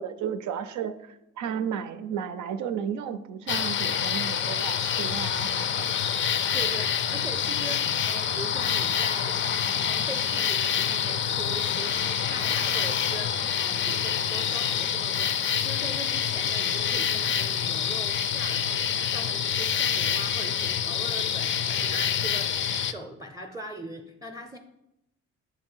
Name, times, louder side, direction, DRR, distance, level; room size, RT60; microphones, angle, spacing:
voice 1, 0.0-5.9, right 8 dB, 75° right, 10 dB, 0.5 m, -33 dB
sound 1, 3.5-22.9, left 8 dB, 40° left, 0.4 m, -27 dB
voice 2, 6.5-24.6, right 1 dB, 10° right, 5 dB, 0.6 m, -41 dB
7.3 x 2.7 x 5.5 m, 0.86 s
cardioid pair, 90°, 30 cm